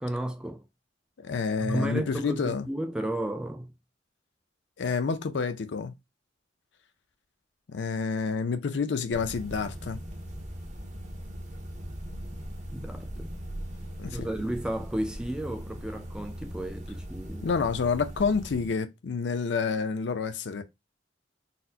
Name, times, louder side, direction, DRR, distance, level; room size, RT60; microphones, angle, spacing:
voice 1, 0.0-0.7 1.6-3.8 12.7-13.3 14.1-17.5, right 1 dB, 5° right, 0.3 m, -33 dB
voice 2, 1.2-2.7 4.8-5.9 7.7-10.0 14.0-14.3 17.4-20.6, left 5 dB, 70° left, 0.5 m, -29 dB
sound 1, 9.1-18.7, equal, 45° right, 0.8 m, -40 dB
4.1 x 2.1 x 2.6 m
head